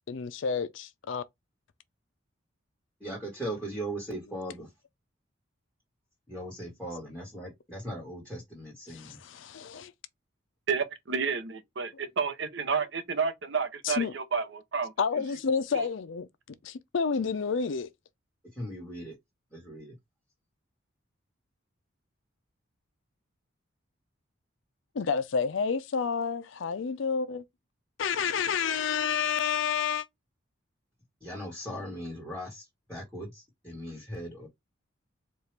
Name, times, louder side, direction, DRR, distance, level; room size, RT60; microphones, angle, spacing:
voice 1, 0.1-1.2 8.9-9.9 13.8-14.1 15.0-16.3 16.6-17.9 24.9-27.4 28.0-30.1, left 6 dB, 65° left, 0.5 m, -29 dB
voice 2, 3.0-4.7 6.3-9.2 18.5-19.2 19.5-19.9 31.2-34.5, right 1 dB, 5° left, 1.5 m, -39 dB
voice 3, 10.7-14.9 15.7-15.9, right 5 dB, 60° right, 0.7 m, -30 dB
4.5 x 2.4 x 3.2 m
head